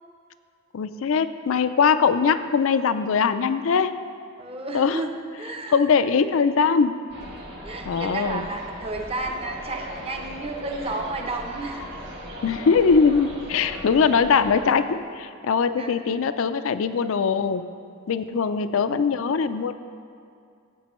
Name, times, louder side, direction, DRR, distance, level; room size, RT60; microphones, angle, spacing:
voice 1, 0.7-4.0 4.7-5.0 5.7-7.0 7.9-8.4 12.4-17.6 18.1-19.7, left 5 dB, 70° left, 12 dB, 0.4 m, -21 dB
voice 2, 4.4-5.1 5.4-5.8 7.6-11.9 15.8-15.9, right 2 dB, 25° right, 2 dB, 0.7 m, -32 dB
sound 1, 7.1-14.6, equal, 55° right, 2.3 m, -38 dB
13.0 x 8.4 x 3.0 m, 2.4 s
head